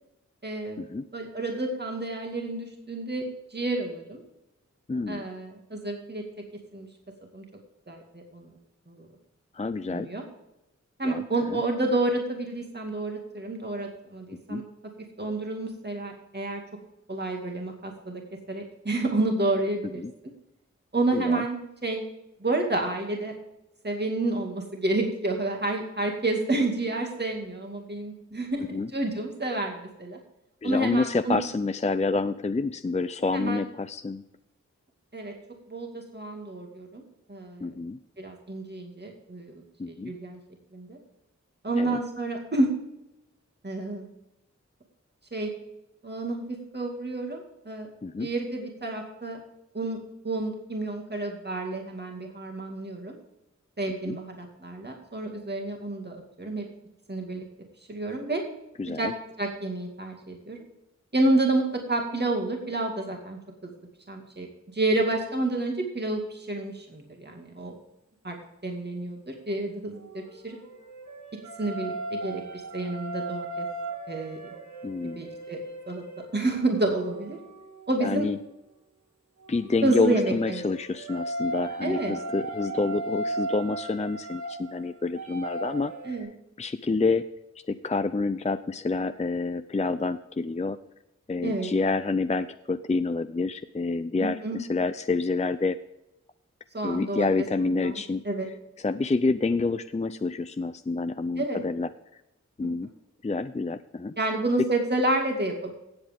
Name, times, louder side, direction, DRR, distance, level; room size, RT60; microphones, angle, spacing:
voice 1, 0.4-0.8 1.1-3.2 3.5-4.2 5.1-6.2 6.7-6.9 7.3-7.4 7.9-8.5 8.9-9.1 9.9-10.2 11.0-14.6 15.2-16.6 17.1-18.2 18.5-20.0 20.9-21.6 21.8-22.0 22.4-23.3 23.8-30.2 30.6-31.4 33.3-33.6 35.1-35.3 35.7-37.0 37.3-37.7 38.2-39.5 39.9-40.4 40.7-41.0 41.6-42.7 43.6-44.1 45.3-45.5 46.0-47.9 48.2-49.4 49.7-53.2 53.8-56.6 57.1-57.4 57.9-58.4 58.9-59.1 59.4-60.6 61.1-63.7 64.1-67.7 68.2-68.4 68.6-70.1 70.4-70.6 71.6-72.4 72.7-73.7 74.1-74.5 75.0-75.6 75.9-76.0 76.3-77.4 77.9-78.3 79.8-80.6 81.8-82.1 86.1-86.3 91.4-91.7 94.2-94.6 96.7-97.3 97.8-98.0 98.2-98.5 101.4-101.6 102.6-102.7 104.2-105.7, right 2 dB, 35° right, 1 dB, 2.3 m, -29 dB
voice 2, 4.9-5.3 9.5-10.1 11.0-11.6 14.3-14.6 20.0-20.1 21.1-21.4 28.7-28.9 30.6-34.2 37.6-38.0 39.8-40.1 41.8-42.0 48.0-48.3 54.0-54.2 58.8-59.1 74.8-75.2 78.0-78.4 79.5-86.2 86.6-87.3 87.7-90.8 91.3-95.8 96.8-98.2 98.8-101.9 102.6-102.9 103.2-104.1, left 3 dB, 25° left, 11 dB, 0.5 m, -28 dB
sound 1, 70.0-78.3 79.4-86.2, right 2 dB, 70° right, 2.3 m, -37 dB
16.5 x 8.0 x 3.6 m, 0.89 s
wide cardioid pair, 65°, 29 cm